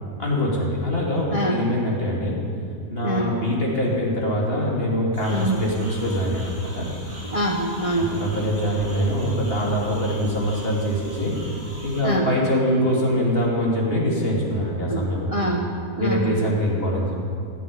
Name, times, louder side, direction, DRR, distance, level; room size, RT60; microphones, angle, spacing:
voice 1, 0.2-2.4 2.9-6.9 8.0-11.3 11.8-15.3 16.0-17.2, equal, 40° left, -3 dB, 3.2 m, -23 dB
voice 2, 1.3-1.7 3.0-3.4 5.3-5.6 7.2-8.2 12.0-12.3 14.9-15.7 16.0-16.5, right 1 dB, 25° right, 1 dB, 1.0 m, -25 dB
sound 1, 5.1-12.0, left 1 dB, 70° right, 4.8 m, -40 dB
16.0 x 9.1 x 8.9 m, 2.5 s
omnidirectional pair, 1.6 m